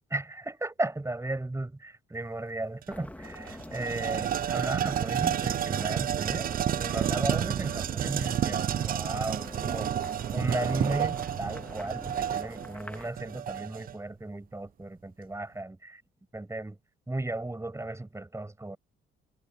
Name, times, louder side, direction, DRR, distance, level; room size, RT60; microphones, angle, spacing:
voice 1, 0.1-9.9 10.3-16.0 16.3-16.8 17.1-18.8, right 2 dB, 15° right, 8.0 m, -35 dB
sound 1, 2.8-2.9 3.2-13.9, right 10 dB, 45° right, 0.4 m, -30 dB
sound 2, 2.9-13.1, left 1 dB, 5° left, 2.4 m, -46 dB
cardioid pair, 90°, 20 cm